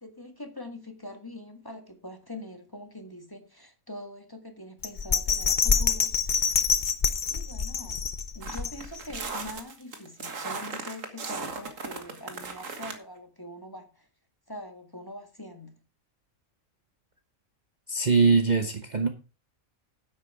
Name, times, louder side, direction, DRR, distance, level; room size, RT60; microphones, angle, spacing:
voice 1, 0.0-6.6 7.3-8.0 8.3-14.1 14.5-15.7, left 1 dB, 15° left, 1.7 m, -43 dB
Bell, 4.8-9.2 9.6-9.7, left 6 dB, 40° left, 1.0 m, -26 dB
sound 1, 8.4-13.0, right 4 dB, 70° right, 2.0 m, -37 dB
voice 2, 17.9-19.1, right 4 dB, 35° right, 1.0 m, -22 dB
9.8 x 8.6 x 4.8 m
omnidirectional pair, 1.4 m